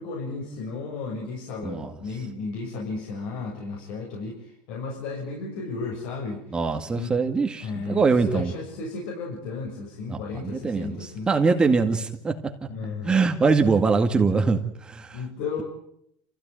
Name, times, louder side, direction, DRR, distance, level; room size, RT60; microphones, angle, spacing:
voice 1, 0.0-6.4 6.9-7.1 7.6-11.3 12.7-13.2 15.1-15.6, left 4 dB, 70° left, -1 dB, 7.2 m, -34 dB
voice 2, 6.5-8.5 10.1-12.5 13.1-15.2, right 4 dB, 20° right, 5 dB, 2.0 m, -23 dB
26.5 x 16.5 x 9.2 m, 0.73 s
supercardioid pair, 120°, 4 cm